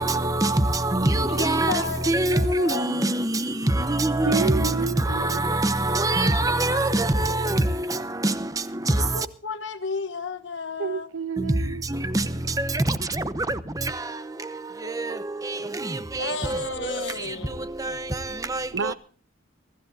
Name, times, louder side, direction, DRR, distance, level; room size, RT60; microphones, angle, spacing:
voice 1, 0.0-1.7 2.1-3.4 3.8-4.7 5.1-7.6 8.2-8.3 12.1-12.2 12.7-12.8 18.5-18.6, right 2 dB, 15° right, 0.8 m, -23 dB
voice 2, 1.1-3.1 6.2-7.5 9.1-11.1 16.2-17.7, left 4 dB, 65° left, 1.4 m, -33 dB
voice 3, 4.2-5.4 10.8-11.8 18.7-18.9, right 5 dB, 85° right, 0.7 m, -29 dB
23.5 x 15.0 x 2.7 m
head